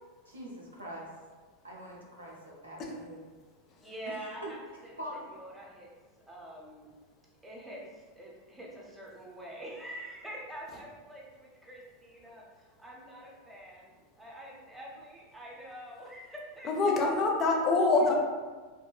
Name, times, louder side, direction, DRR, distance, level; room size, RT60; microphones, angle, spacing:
voice 1, 0.3-1.1 1.6-3.2 4.1-4.2 4.4-4.5 5.0-5.3, equal, 90° right, -3 dB, 0.5 m, -43 dB
voice 2, 3.8-5.9 6.3-6.9 7.4-16.7, right 1 dB, 5° right, -4 dB, 0.6 m, -46 dB
voice 3, 16.6-18.1, left 3 dB, 40° left, 1 dB, 0.4 m, -25 dB
2.5 x 2.1 x 2.3 m, 1.4 s
figure-of-eight pair, 85°, 0 cm